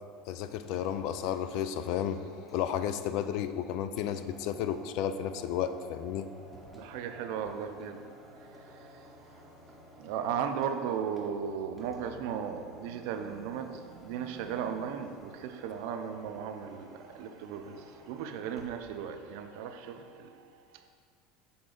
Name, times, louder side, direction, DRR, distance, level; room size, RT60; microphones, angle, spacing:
voice 1, 0.3-6.3, left 9 dB, 60° left, 11 dB, 0.3 m, -33 dB
sound 1, 0.6-18.8, equal, 5° left, 0.9 m, -55 dB
voice 2, 6.7-8.0 10.0-20.3, right 7 dB, 70° right, 7 dB, 0.5 m, -36 dB
6.7 x 3.9 x 3.8 m, 2.1 s
supercardioid pair, 135°, 0 cm